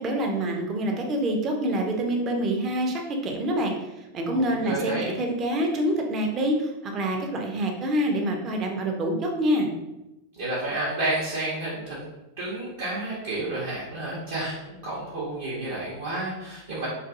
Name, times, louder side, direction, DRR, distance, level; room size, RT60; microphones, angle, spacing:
voice 1, 0.0-3.7 4.1-9.7, right 1 dB, 30° right, 2 dB, 0.5 m, -26 dB
voice 2, 4.2-5.2 10.4-12.0 12.4-16.9, right 2 dB, 60° right, -9 dB, 0.7 m, -30 dB
2.5 x 2.4 x 2.6 m, 0.97 s
figure-of-eight pair, 90°, 0 cm